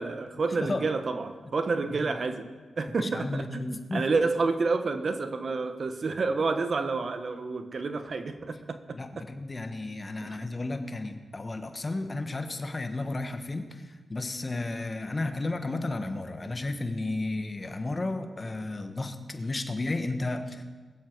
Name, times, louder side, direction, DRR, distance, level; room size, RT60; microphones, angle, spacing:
voice 1, 0.0-2.5 2.8-9.2 10.2-10.4, right 4 dB, 60° right, 9 dB, 1.2 m, -29 dB
voice 2, 0.6-0.9 1.8-2.1 3.0-4.0 8.9-20.6, left 2 dB, 35° left, 7 dB, 1.5 m, -33 dB
21.5 x 7.6 x 4.7 m, 1.3 s
cardioid pair, 50°, 0 cm